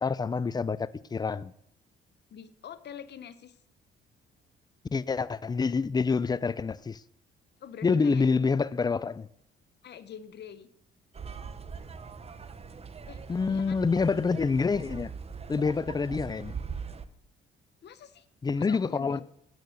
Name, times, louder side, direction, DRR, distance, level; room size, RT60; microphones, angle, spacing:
voice 1, 0.0-1.5 4.9-7.0 7.8-9.3 13.3-15.1 15.5-16.5 18.4-19.2, left 4 dB, 20° left, 0.4 m, -27 dB
voice 2, 2.3-3.6 7.6-8.5 9.8-10.7 13.1-13.2 13.5-13.8 17.8-18.3 18.6-19.2, left 8 dB, 60° left, 0.9 m, -45 dB
sound 1, 11.1-17.1, right 5 dB, 30° right, 0.8 m, -41 dB
9.3 x 8.7 x 6.4 m
cardioid pair, 90°, 20 cm